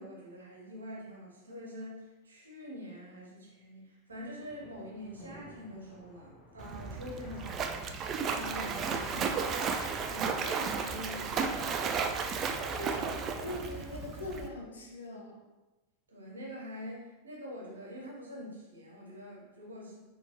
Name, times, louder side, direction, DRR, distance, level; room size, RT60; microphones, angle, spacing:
voice 1, 0.0-9.3 10.0-11.7 16.1-20.0, equal, 75° right, -3 dB, 1.1 m, -45 dB
sound 1, 4.1-10.6, equal, 25° left, 0.8 m, -55 dB
Splash splatter, 6.6-14.5, right 5 dB, 30° right, 0.3 m, -34 dB
voice 2, 12.8-15.4, left 1 dB, 70° left, 0 dB, 0.7 m, -41 dB
4.1 x 2.9 x 2.9 m, 1.1 s
figure-of-eight pair, 90°, 0 cm